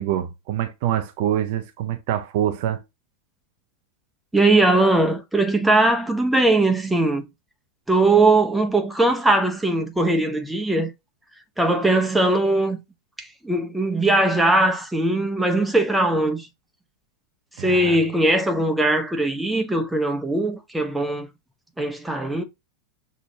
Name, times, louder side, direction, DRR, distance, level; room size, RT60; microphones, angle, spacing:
voice 1, 0.0-2.8 17.6-18.0, right 11 dB, 50° right, 0.5 m, -25 dB
voice 2, 4.3-7.2 7.9-10.9 11.6-12.8 13.2-16.5 17.6-21.3 21.8-22.4, right 2 dB, 5° right, 0.8 m, -20 dB
6.1 x 3.0 x 2.7 m
figure-of-eight pair, 90°, 0 cm